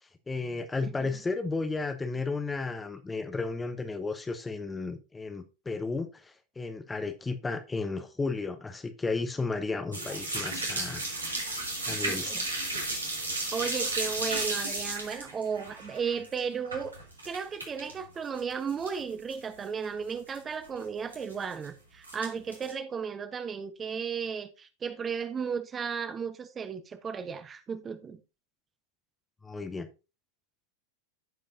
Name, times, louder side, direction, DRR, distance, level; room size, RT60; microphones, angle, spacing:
voice 1, 0.3-11.1 11.9-12.3 29.4-29.9, left 3 dB, 10° left, 0.8 m, -33 dB
sound 1, 9.9-17.9 18.2-19.0 19.3-19.4 19.8-19.9 20.1-20.4 21.1-21.7 22.0-22.7, right 2 dB, 80° right, 2.6 m, -34 dB
voice 2, 11.9-12.7 13.5-16.9 17.2-28.2, right 6 dB, 20° right, 0.9 m, -35 dB
15.0 x 5.1 x 2.6 m
figure-of-eight pair, 90°, 0 cm